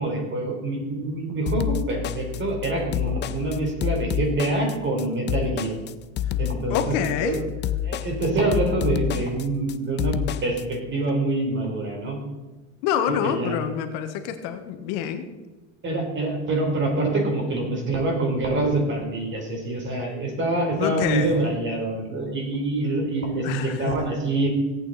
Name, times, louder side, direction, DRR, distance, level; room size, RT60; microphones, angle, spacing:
voice 1, 0.0-5.8 6.4-6.9 7.2-7.4 7.8-10.1 10.4-12.2 13.1-13.6 15.8-24.5, right 2 dB, 30° right, 1 dB, 4.0 m, -25 dB
sound 1, 1.5-10.6, left 11 dB, 30° left, 0.5 m, -28 dB
voice 2, 6.7-7.4 12.8-15.3 20.8-21.4 23.4-24.1, left 9 dB, 65° left, 8 dB, 1.5 m, -27 dB
17.0 x 8.8 x 4.2 m, 1.2 s
supercardioid pair, 125°, 36 cm